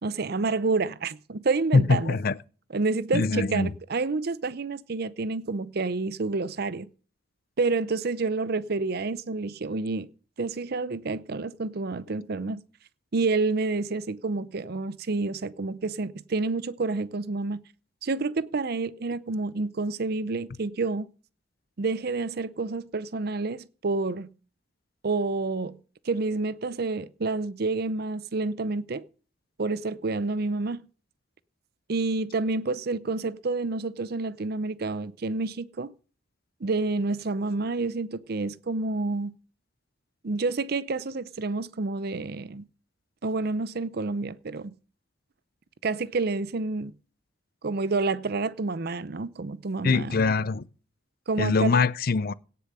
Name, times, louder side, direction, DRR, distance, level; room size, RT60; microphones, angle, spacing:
voice 1, 0.0-2.2 2.7-6.9 7.6-10.1 10.4-12.6 13.1-17.6 18.0-21.1 21.8-24.3 25.0-29.0 29.6-30.8 31.9-35.9 36.6-39.4 40.2-42.7 43.2-44.8 45.8-46.9 47.6-50.2 51.3-51.7, right 3 dB, 55° right, 0.6 m, -29 dB
voice 2, 1.7-2.4 3.1-3.7 49.8-50.6 51.4-52.3, left 4 dB, 50° left, 0.6 m, -23 dB
17.0 x 7.0 x 5.5 m
head